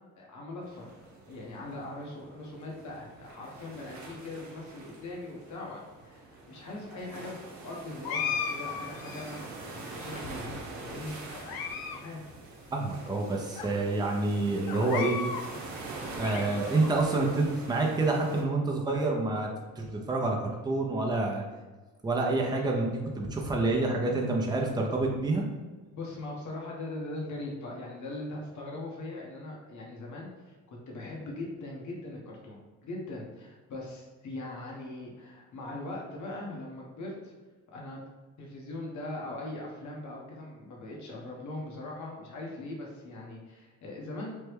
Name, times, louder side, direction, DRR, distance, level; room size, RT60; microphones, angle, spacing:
voice 1, 0.2-0.9 1.3-11.2 11.9-12.3 25.9-37.3 37.7-38.0 38.4-44.3, left 2 dB, 50° left, -2 dB, 1.0 m, -41 dB
sound 1, 0.6-18.4, right 2 dB, 85° right, 0.9 m, -44 dB
sound 2, 8.0-9.5 10.1-10.8 11.3-12.0 12.3-12.4 13.1-13.2 13.6-13.7 14.7-15.5 15.9-16.9, left 6 dB, 75° left, 0.5 m, -36 dB
voice 2, 12.7-15.2 16.2-19.5 19.8-21.4 22.0-25.4, right 2 dB, 10° right, -1 dB, 0.6 m, -28 dB
3.2 x 2.1 x 3.3 m, 1.3 s
supercardioid pair, 70°, 36 cm